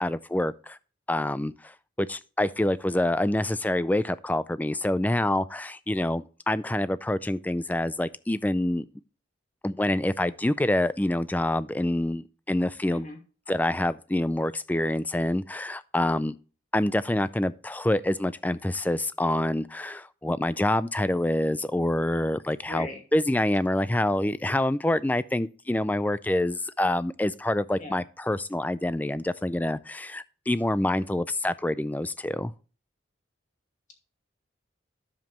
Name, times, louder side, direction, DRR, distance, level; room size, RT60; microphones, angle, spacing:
voice 1, 0.0-0.8 1.1-8.8 9.6-13.1 13.5-16.4 16.7-32.5, left 1 dB, 10° left, 0.3 m, -26 dB
voice 2, 12.9-13.2 22.7-23.0 27.8-28.0, left 1 dB, 40° left, 2.5 m, -39 dB
10.5 x 7.3 x 3.0 m
head